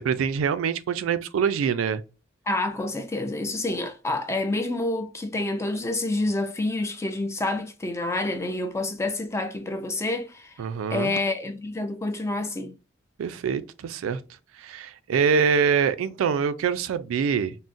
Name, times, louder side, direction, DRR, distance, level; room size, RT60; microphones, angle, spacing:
voice 1, 0.0-2.0 10.6-11.1 13.2-14.2 14.6-17.5, right 6 dB, 85° right, 0.3 m, -24 dB
voice 2, 2.5-10.5 10.9-12.7, left 2 dB, 15° left, 0.3 m, -28 dB
3.7 x 2.0 x 2.5 m
head